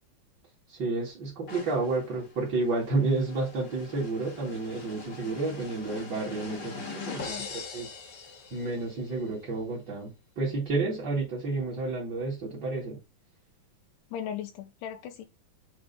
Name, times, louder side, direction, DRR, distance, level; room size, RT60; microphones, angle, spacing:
voice 1, 0.7-7.3 7.7-7.9 8.5-13.0, right 3 dB, 35° right, 2.1 m, -30 dB
sound 1, 1.5-9.0, left 4 dB, 45° left, 1.4 m, -43 dB
voice 2, 6.5-7.5 14.1-15.3, left 9 dB, 80° left, 2.1 m, -39 dB
8.6 x 3.3 x 4.0 m
omnidirectional pair, 4.0 m